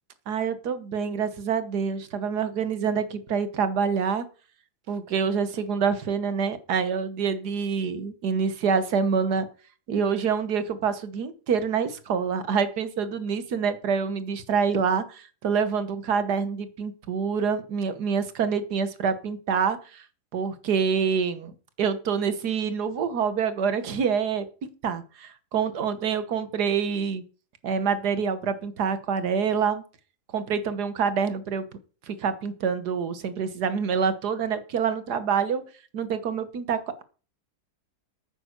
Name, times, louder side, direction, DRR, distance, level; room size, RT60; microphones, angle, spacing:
voice 1, 0.3-4.3 4.9-9.5 9.9-20.1 20.3-21.5 21.8-24.5 24.8-27.2 27.6-29.8 30.3-31.7 32.1-35.6 35.9-37.0, right 6 dB, 80° right, 12 dB, 1.8 m, -26 dB
9.2 x 8.8 x 6.7 m, 0.37 s
omnidirectional pair, 1.7 m